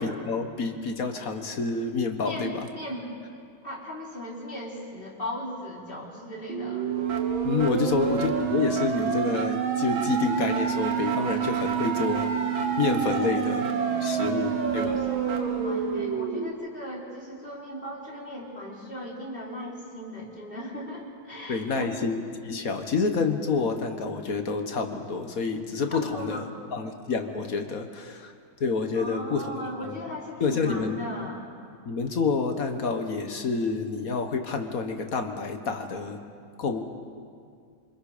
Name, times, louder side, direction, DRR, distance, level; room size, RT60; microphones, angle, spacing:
voice 1, 0.0-2.7 7.4-13.7 14.0-15.0 21.5-28.3 28.6-29.5 29.8-30.0 30.4-31.0 31.9-36.2 36.6-36.8, left 4 dB, 50° left, 6 dB, 1.7 m, -28 dB
voice 2, 2.2-3.1 3.6-6.9 7.9-8.1 13.2-21.9 25.9-26.4 28.9-31.4, equal, 25° left, -4 dB, 4.2 m, -38 dB
sound 1, 6.5-16.5, right 7 dB, 85° right, 2.3 m, -27 dB
28.5 x 25.5 x 5.1 m, 2.2 s
omnidirectional pair, 2.2 m